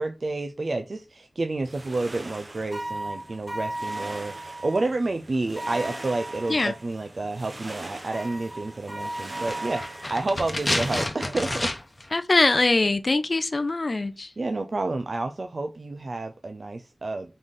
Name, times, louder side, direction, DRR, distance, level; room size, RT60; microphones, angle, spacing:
voice 1, 0.0-11.7 14.4-17.4, right 2 dB, 65° right, 0.4 m, -30 dB
sound 1, 1.6-11.1, right 2 dB, 45° right, 0.9 m, -42 dB
sound 2, 2.7-4.8 5.6-6.8 8.1-10.3, right 1 dB, 5° left, 1.4 m, -36 dB
sound 3, 9.2-12.1 12.3-12.4, left 1 dB, 35° left, 0.9 m, -30 dB
voice 2, 12.1-14.3, left 2 dB, 55° left, 0.4 m, -22 dB
4.0 x 3.2 x 3.7 m
cardioid pair, 40°, 0 cm